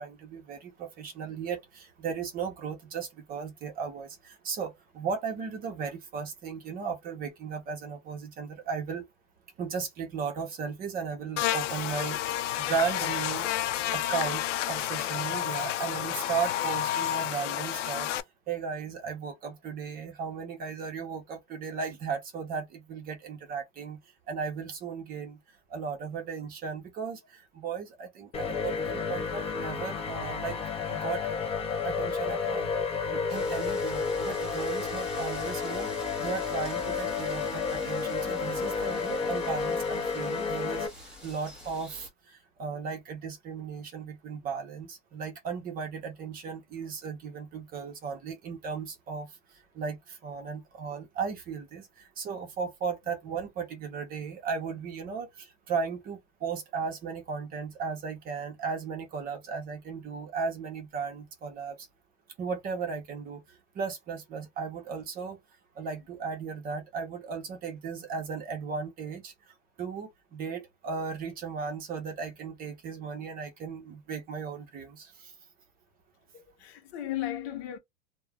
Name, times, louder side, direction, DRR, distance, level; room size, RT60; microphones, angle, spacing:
voice 1, 0.0-9.1 9.6-13.5 13.9-18.1 18.5-24.0 24.3-25.4 25.7-30.6 30.9-31.2 31.8-32.7 33.1-35.9 36.2-61.9 62.4-65.4 65.7-75.3, right 5 dB, 25° right, 0.7 m, -36 dB
Buzz, 11.4-18.2, left 13 dB, 70° left, 0.5 m, -30 dB
sound 1, 28.3-40.9, left 5 dB, 15° left, 0.6 m, -31 dB
sound 2, 33.3-42.1, left 1 dB, ahead, 1.4 m, -47 dB
voice 2, 76.3-77.8, left 13 dB, 55° left, 0.9 m, -35 dB
3.2 x 2.1 x 2.3 m
hypercardioid pair, 130°, 38 cm